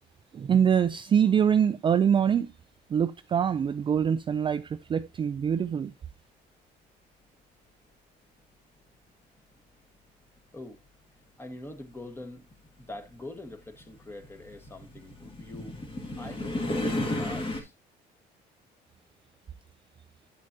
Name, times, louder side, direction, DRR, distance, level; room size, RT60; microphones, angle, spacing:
voice 1, 0.3-2.5 2.9-5.9, right 8 dB, 30° right, 0.3 m, -24 dB
sound 1, 10.4-10.5 11.5-17.6, left 1 dB, 30° left, 2.0 m, -34 dB
voice 2, 11.4-12.5 12.8-15.8 16.2-17.7, left 1 dB, 15° left, 1.4 m, -44 dB
9.9 x 6.5 x 2.7 m
cardioid pair, 110°, 17 cm